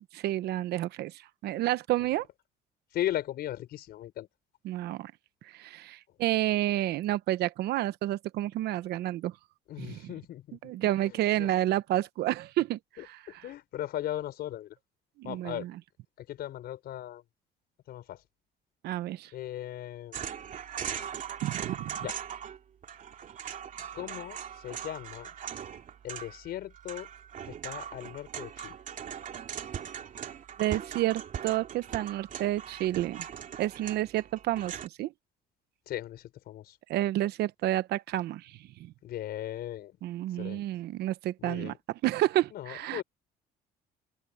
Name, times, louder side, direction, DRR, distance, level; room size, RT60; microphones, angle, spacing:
voice 1, 0.1-2.3 4.6-5.1 5.5-9.3 9.8-10.1 10.6-13.5 15.2-15.8 18.8-19.3 21.4-22.0 30.6-33.3 33.6-35.1 36.9-38.9 40.0-43.0, right 14 dB, 75° right, 0.9 m, -30 dB
voice 2, 2.9-4.3 9.7-10.6 11.0-11.5 13.0-14.7 15.2-15.7 16.3-17.2 17.9-18.2 19.3-20.3 22.0-22.1 23.9-25.3 26.0-27.1 27.4-28.8 35.9-36.8 39.0-39.9 40.4-40.6 41.4-41.8 42.5-43.0, left 13 dB, 70° left, 5.0 m, -37 dB
sound 1, 20.1-22.6 22.8-34.9, right 8 dB, 50° right, 2.6 m, -40 dB
open air
cardioid pair, 110°, 17 cm